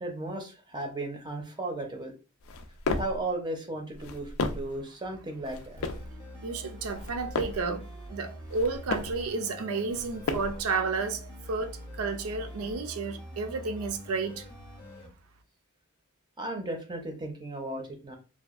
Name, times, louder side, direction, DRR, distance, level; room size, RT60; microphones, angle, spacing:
voice 1, 0.0-2.1 3.0-5.8 16.4-18.2, right 2 dB, 20° right, 0.5 m, -35 dB
sound 1, 2.4-3.2 3.9-4.8 5.4-6.1 6.8-7.7 8.4-9.2 9.9-10.7, left 3 dB, 65° left, 0.4 m, -34 dB
sound 2, 5.8-15.1, equal, 20° left, 0.6 m, -44 dB
voice 2, 6.4-14.5, right 4 dB, 80° right, 0.4 m, -32 dB
2.7 x 2.2 x 2.4 m
head